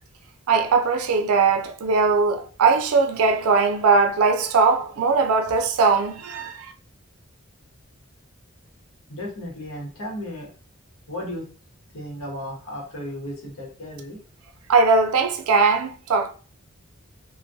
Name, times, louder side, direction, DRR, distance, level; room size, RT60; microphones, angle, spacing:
voice 1, 0.5-6.7 14.7-16.3, right 4 dB, 90° right, 0.4 m, -20 dB
voice 2, 9.1-10.5 11.1-11.5 11.9-14.2, left 1 dB, 75° left, 0.9 m, -34 dB
2.2 x 2.1 x 2.6 m
head